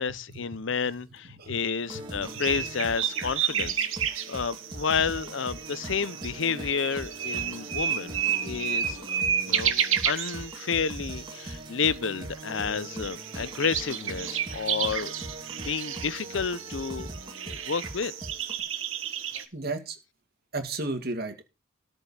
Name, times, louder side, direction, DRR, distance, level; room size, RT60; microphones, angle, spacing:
voice 1, 0.0-3.9 4.3-15.1 15.5-17.1 17.5-18.1, left 6 dB, 65° left, 0.7 m, -30 dB
sound 1, 1.9-18.6, right 1 dB, 25° right, 2.5 m, -41 dB
sound 2, 2.2-11.6 11.9-12.0 12.2-19.4, right 9 dB, 80° right, 1.6 m, -32 dB
voice 2, 19.5-20.0 20.5-21.5, right 2 dB, 50° right, 2.2 m, -33 dB
13.5 x 5.4 x 7.3 m
head